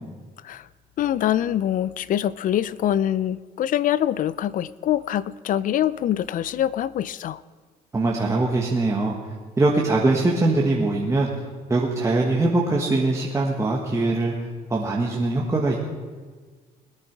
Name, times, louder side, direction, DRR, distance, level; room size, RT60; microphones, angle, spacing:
voice 1, 1.0-7.4, left 11 dB, 50° left, 19 dB, 0.5 m, -24 dB
voice 2, 7.9-11.3 11.7-14.3 14.7-15.8, right 2 dB, 15° right, -2 dB, 1.5 m, -22 dB
20.5 x 9.8 x 4.7 m, 1.5 s
cardioid pair, 110°, 17 cm